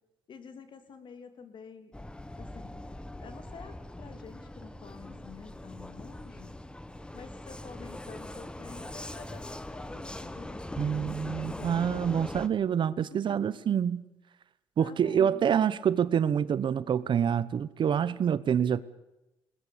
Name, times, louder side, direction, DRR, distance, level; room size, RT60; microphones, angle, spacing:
voice 1, 0.3-1.9 2.3-2.8 3.2-6.5 7.1-12.1 13.0-13.6 14.8-15.4, left 6 dB, 55° left, 3.0 m, -49 dB
Vehicle, 1.9-12.5, left 1 dB, 10° left, 1.3 m, -41 dB
voice 2, 10.8-14.0 14.8-18.8, right 8 dB, 55° right, 1.0 m, -27 dB
21.0 x 20.0 x 8.5 m
cardioid pair, 80°, 10 cm